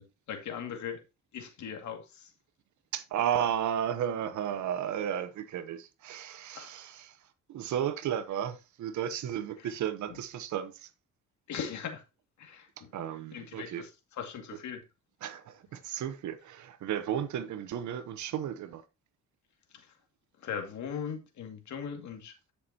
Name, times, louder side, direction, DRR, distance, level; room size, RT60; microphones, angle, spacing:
voice 1, 0.3-1.0 1.3-2.3 6.5-6.7 11.5-12.0 12.4-12.9 13.3-13.9 14.2-14.8 20.4-22.5, left 7 dB, 70° left, 2.3 m, -39 dB
voice 2, 2.9-7.1 7.5-10.9 12.9-13.8 15.2-18.8, right 9 dB, 70° right, 1.0 m, -33 dB
10.5 x 6.6 x 2.9 m
cardioid pair, 90°, 30 cm